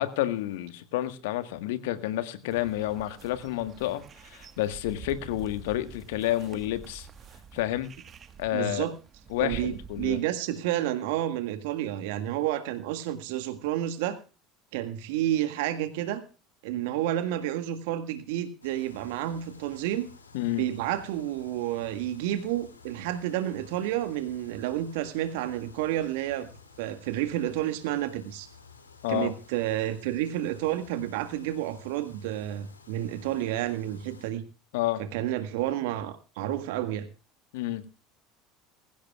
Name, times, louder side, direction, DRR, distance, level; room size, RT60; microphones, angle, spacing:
voice 1, 0.0-7.1 7.5-7.9 8.4-8.9 9.3-10.2 20.3-20.6 29.0-29.3 34.7-35.0 37.5-37.8, left 14 dB, 65° left, 1.5 m, -30 dB
sound 1, 2.5-10.2, right 7 dB, 35° right, 1.5 m, -46 dB
voice 2, 8.5-8.9 9.4-14.2 14.7-16.2 16.6-20.1 20.6-26.5 26.8-28.5 29.1-34.4 35.0-37.1, right 13 dB, 65° right, 1.7 m, -30 dB
sound 2, 18.6-34.3, left 4 dB, 85° left, 2.7 m, -53 dB
22.0 x 15.5 x 2.4 m
figure-of-eight pair, 65°, 0 cm